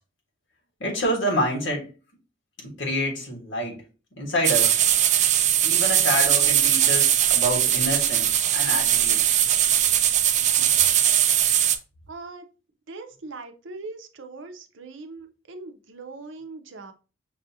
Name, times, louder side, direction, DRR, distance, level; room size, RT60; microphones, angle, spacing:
voice 1, 0.8-1.9 2.6-3.8 4.2-4.8 5.6-9.2, equal, 75° left, -1 dB, 1.6 m, -27 dB
sound 1, 4.4-11.8, right 10 dB, 40° right, 0.3 m, -20 dB
voice 2, 12.1-12.4 12.9-16.9, right 3 dB, 75° right, 7 dB, 0.7 m, -40 dB
6.1 x 2.4 x 2.7 m, 0.33 s
head